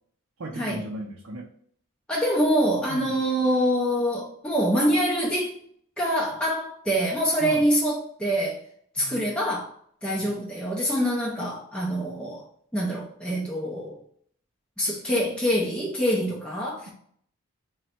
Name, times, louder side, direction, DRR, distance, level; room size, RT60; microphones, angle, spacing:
voice 1, 0.4-1.5 2.9-3.2 7.4-7.6 9.0-9.3 10.2-10.4, right 1 dB, 60° right, 0.5 m, -37 dB
voice 2, 2.1-5.5 6.0-8.6 8.9-9.7 10.0-12.4 12.7-14.0 14.8-16.9, equal, 5° left, 0.5 m, -25 dB
3.8 x 2.1 x 4.4 m
head